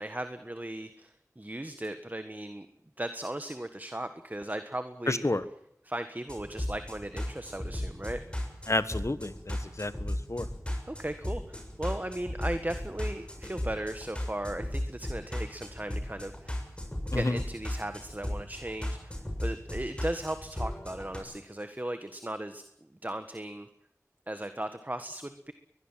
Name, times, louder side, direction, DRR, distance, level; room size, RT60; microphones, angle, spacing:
voice 1, 0.0-2.7 3.0-5.2 5.8-8.2 10.9-16.6 17.1-22.6 23.0-23.7 24.3-25.5, right 1 dB, 30° right, 9 dB, 1.5 m, -37 dB
voice 2, 5.1-5.4 8.7-10.4 17.1-17.2, left 2 dB, 60° left, 13 dB, 1.4 m, -30 dB
sound 1, 6.3-21.2, left 1 dB, 20° left, 7.2 m, -36 dB
22.5 x 21.0 x 7.5 m, 0.76 s
wide cardioid pair, 40°, 6 cm